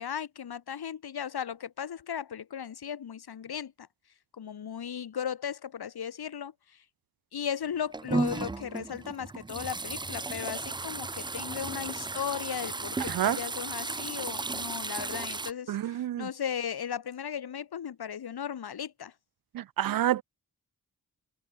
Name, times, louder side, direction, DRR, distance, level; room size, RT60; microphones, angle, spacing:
voice 1, 0.0-3.9 4.4-6.5 7.3-19.1, left 8 dB, 85° left, 1.6 m, -36 dB
sound 1, 7.7-15.5, right 3 dB, 15° right, 0.3 m, -34 dB
voice 2, 13.1-13.4 15.7-16.3 19.5-20.2, right 12 dB, 70° right, 0.5 m, -28 dB
wide cardioid pair, 100°, 37 cm